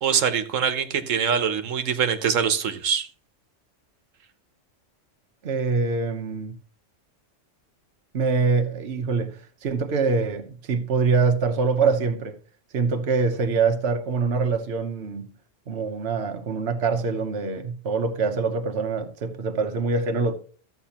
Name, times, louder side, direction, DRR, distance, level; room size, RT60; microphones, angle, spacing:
voice 1, 0.0-3.1, right 7 dB, 90° right, 1.3 m, -23 dB
voice 2, 5.4-6.6 8.1-12.4 12.7-15.3 15.7-20.3, right 4 dB, 60° right, 1.2 m, -24 dB
13.5 x 8.0 x 2.9 m
omnidirectional pair, 1.3 m